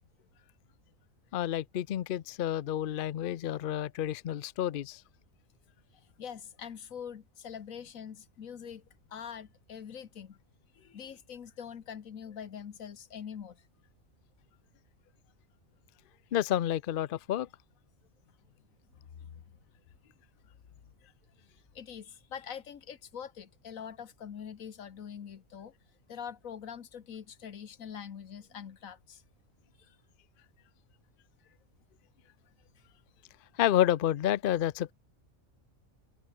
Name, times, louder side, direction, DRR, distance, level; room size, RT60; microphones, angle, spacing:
voice 1, 1.3-5.0 16.3-17.5 33.6-34.9, left 11 dB, 55° left, 0.6 m, -29 dB
voice 2, 5.9-10.4 10.7-13.6 18.5-18.6 18.9-19.6 20.7-20.9 21.5-25.7 26.1-29.2 29.9-30.0 31.4-31.5 32.7-32.8, left 8 dB, 80° left, 1.6 m, -44 dB
omnidirectional pair, 1.4 m